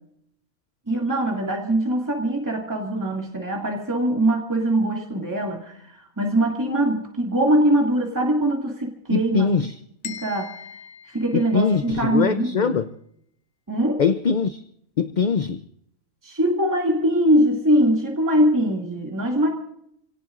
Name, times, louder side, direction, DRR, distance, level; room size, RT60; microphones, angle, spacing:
voice 1, 0.9-5.7 6.2-9.5 10.0-10.5 11.1-12.8 13.7-14.0 16.2-19.5, right 1 dB, 15° right, 2.3 m, -22 dB
voice 2, 9.1-9.7 11.3-12.8 14.0-14.6 15.0-15.6, left 5 dB, 45° left, 0.6 m, -22 dB
sound 1, 10.0-12.0, left 8 dB, 80° left, 1.5 m, -41 dB
29.0 x 17.5 x 2.5 m
omnidirectional pair, 1.4 m